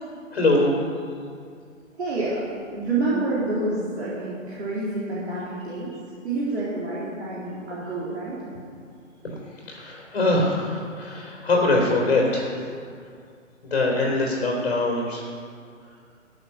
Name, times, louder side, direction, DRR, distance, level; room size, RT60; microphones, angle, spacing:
voice 1, 0.3-0.7 9.2-12.5 13.6-15.3, left 2 dB, 50° left, -3 dB, 3.4 m, -23 dB
voice 2, 2.0-2.4 2.7-5.9 6.2-8.4, right 2 dB, 55° right, -8 dB, 3.6 m, -28 dB
13.5 x 8.0 x 6.7 m, 2.2 s
figure-of-eight pair, 140°, 40 cm